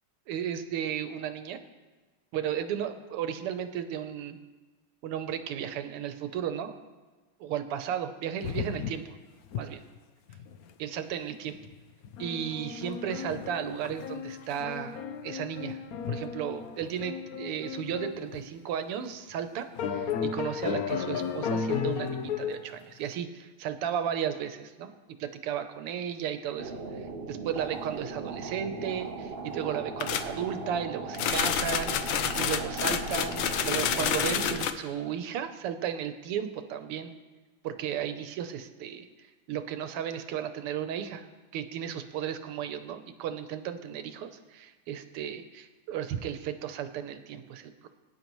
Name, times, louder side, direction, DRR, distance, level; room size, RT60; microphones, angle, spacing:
voice 1, 0.3-1.6 2.3-4.4 5.0-6.7 7.4-9.1 9.5-9.8 10.8-11.6 12.2-15.0 15.2-15.8 16.1-24.9 25.2-37.1 37.6-39.1 39.5-41.3 41.5-47.9, right 9 dB, 85° right, 9 dB, 1.8 m, -34 dB
sound 1, 8.4-9.2 9.4-9.6 10.0-10.1 10.3-10.6 11.6-11.7 12.0-18.5 19.0-19.1 19.8-22.6, left 7 dB, 90° left, 0.8 m, -34 dB
sound 2, 26.6-34.6, right 4 dB, 50° right, 0.6 m, -38 dB
sound 3, 30.0-30.3 31.1-34.7, left 9 dB, 70° left, 1.3 m, -29 dB
22.0 x 10.0 x 3.1 m, 1.3 s
omnidirectional pair, 2.4 m